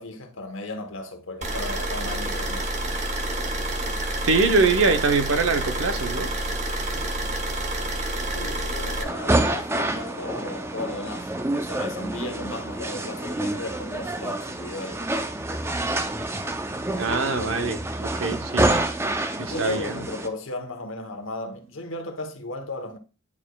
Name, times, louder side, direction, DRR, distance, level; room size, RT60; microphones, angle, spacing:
voice 1, 0.0-2.8 8.3-15.4 19.5-23.0, left 2 dB, 65° left, 1.0 m, -35 dB
sound 1, 1.4-9.0, right 1 dB, 35° right, 1.0 m, -28 dB
voice 2, 4.2-6.3 17.0-18.8 19.4-20.0, right 3 dB, 70° right, 0.7 m, -23 dB
sound 2, 9.0-20.3, right 1 dB, 10° right, 0.4 m, -27 dB
9.4 x 4.8 x 2.3 m
head